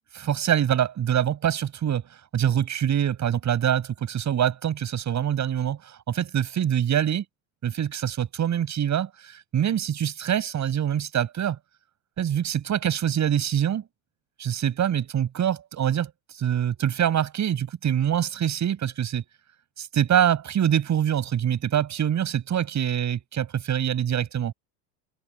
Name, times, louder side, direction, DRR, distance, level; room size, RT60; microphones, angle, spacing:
voice 1, 0.1-2.0 2.3-7.2 7.6-11.6 12.2-13.8 14.4-19.2 19.8-24.5, right 9 dB, 35° right, 7.7 m, -25 dB
figure-of-eight pair, 70°, 50 cm